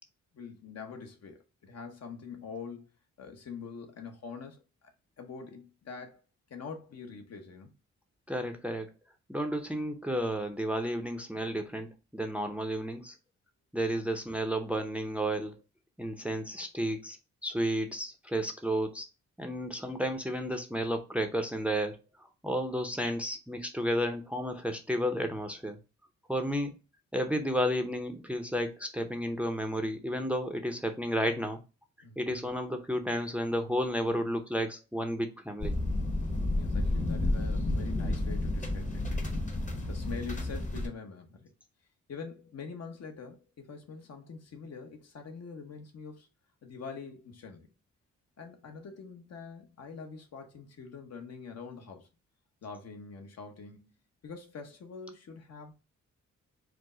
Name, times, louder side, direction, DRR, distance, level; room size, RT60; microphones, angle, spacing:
voice 1, 0.3-2.9 3.2-4.6 5.2-6.2 6.5-7.7 14.0-14.1 32.0-32.3 36.5-39.2 39.9-41.5 42.1-46.3 46.6-47.7 48.4-52.1 52.6-53.9 54.2-55.7, left 5 dB, 60° left, 1.0 m, -44 dB
voice 2, 8.3-8.9 9.3-11.9 12.1-13.2 13.7-15.6 16.0-17.2 17.4-19.1 19.4-25.8 26.3-26.7 27.1-31.6 32.2-35.7, equal, 5° right, 0.6 m, -32 dB
sound 1, 35.6-40.9, left 1 dB, 25° left, 1.0 m, -31 dB
4.8 x 2.1 x 3.7 m
cardioid pair, 110°, 29 cm